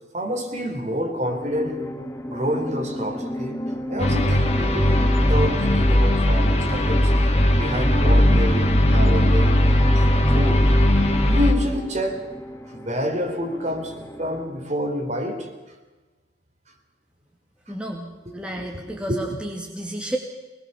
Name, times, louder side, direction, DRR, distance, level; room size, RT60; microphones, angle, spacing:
voice 1, 0.1-1.9 2.3-7.1 7.6-9.5 10.3-10.7 11.2-12.3 12.7-15.5 18.3-19.4, equal, 40° right, 4.0 m, -28 dB
sound 1, 1.2-14.5, equal, 15° left, 2.8 m, -32 dB
sound 2, 4.0-11.5, left 1 dB, 35° left, 2.5 m, -18 dB
voice 2, 17.7-20.2, right 1 dB, 5° right, 2.3 m, -32 dB
24.0 x 20.5 x 7.1 m
head